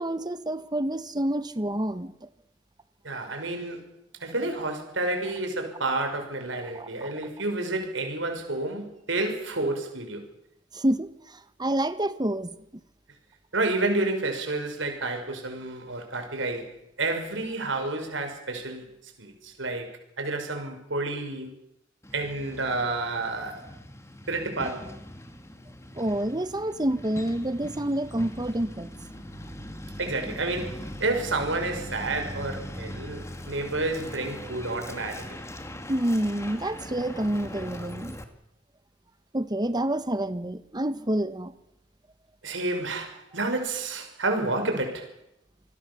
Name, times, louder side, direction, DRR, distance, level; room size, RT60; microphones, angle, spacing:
voice 1, 0.0-2.3 6.7-6.9 10.7-12.5 25.9-28.9 35.9-38.2 39.3-41.5, right 1 dB, 20° right, 1.3 m, -28 dB
voice 2, 3.0-3.9 4.2-10.2 13.5-18.9 19.2-21.6 22.1-23.7 24.3-24.9 30.0-35.4 42.4-45.1, right 2 dB, 70° right, 6.0 m, -30 dB
Truck, 22.0-38.2, equal, 15° left, 2.4 m, -40 dB
27.0 x 20.0 x 7.1 m
head